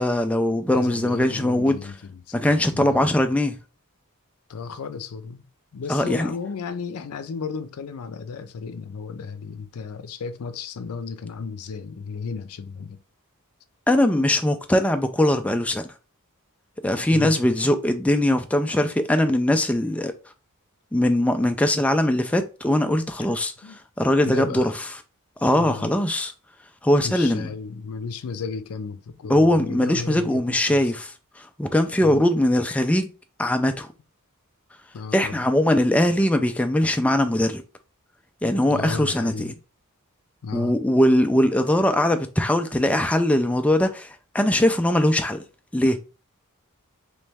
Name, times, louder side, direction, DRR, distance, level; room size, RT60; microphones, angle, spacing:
voice 1, 0.0-1.8 2.3-3.6 5.9-6.3 13.9-15.9 16.8-20.1 20.9-23.5 24.0-24.7 25.4-26.3 26.8-27.5 29.3-31.1 31.4-33.1 33.4-33.9 35.1-37.6 38.4-39.5 40.5-45.4 45.7-46.0, left 1 dB, 5° left, 0.3 m, -21 dB
voice 2, 0.7-3.1 4.5-5.5 5.7-13.0 17.1-17.4 23.2-23.3 23.6-23.8 24.2-24.7 25.5-26.0 27.0-30.9 32.0-32.2 34.9-35.5 38.7-39.5 40.4-40.7, left 5 dB, 80° left, 0.5 m, -34 dB
3.2 x 3.1 x 3.4 m
head